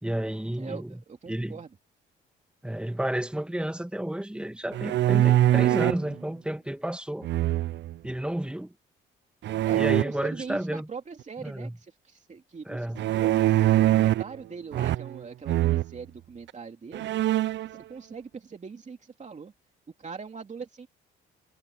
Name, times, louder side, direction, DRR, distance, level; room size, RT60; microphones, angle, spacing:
voice 1, 0.0-1.6 2.6-7.3 8.0-8.7 9.7-10.9 11.4-11.8 12.6-13.1, right 1 dB, 5° right, 1.8 m, -31 dB
voice 2, 0.6-1.7 9.6-13.3 13.7-17.1 17.7-19.5 20.0-20.9, right 5 dB, 35° right, 2.8 m, -41 dB
sound 1, 4.7-6.1 7.2-7.9 9.4-10.0 13.0-14.3 14.7-15.2 15.5-15.9 16.5-16.6 16.9-17.7, right 14 dB, 65° right, 0.5 m, -23 dB
cardioid pair, 90°, 20 cm